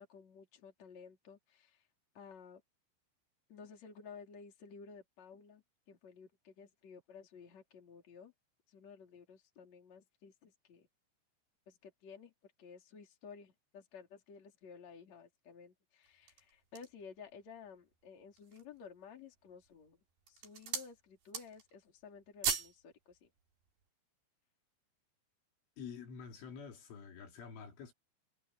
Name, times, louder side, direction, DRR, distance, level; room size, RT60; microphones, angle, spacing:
voice 1, 0.0-1.9 2.1-2.6 3.5-8.3 8.7-10.9 11.7-20.0 20.3-23.3, left 6 dB, 35° left, 4.6 m, -54 dB
sound 1, 16.1-17.1 17.7-17.8 18.2-18.8 19.5-19.8 20.2-20.9 21.2-21.7 22.0-22.8 23.1-23.3, right 6 dB, 55° right, 5.4 m, -39 dB
voice 2, 25.8-27.9, left 6 dB, 75° left, 5.9 m, -48 dB
omnidirectional pair, 5.7 m